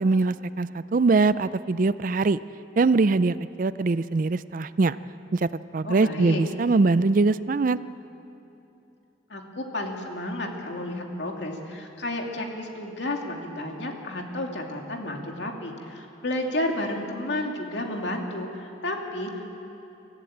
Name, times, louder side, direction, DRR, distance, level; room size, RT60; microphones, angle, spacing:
voice 1, 0.0-2.4 2.8-5.0 5.3-7.8, right 3 dB, 45° right, 15 dB, 0.4 m, -22 dB
voice 2, 5.8-6.4 9.3-19.5, left 1 dB, 70° left, 2 dB, 2.5 m, -31 dB
24.5 x 14.5 x 8.7 m, 2.8 s
head